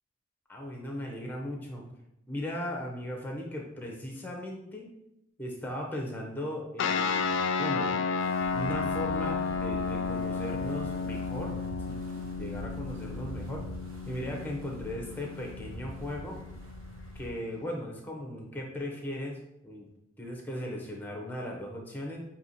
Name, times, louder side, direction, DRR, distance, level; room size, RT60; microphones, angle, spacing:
voice 1, 0.5-1.8 2.3-4.9 5.4-7.9 8.5-11.5 11.9-13.6 14.1-16.4 17.1-19.4 19.6-19.9 20.2-22.2, left 1 dB, 10° left, 0 dB, 0.7 m, -37 dB
sound 1, 6.8-17.7, left 5 dB, 60° left, 0.3 m, -33 dB
Wind, 8.2-17.3, right 1 dB, 85° right, 0.7 m, -44 dB
6.6 x 2.8 x 2.7 m, 0.85 s
head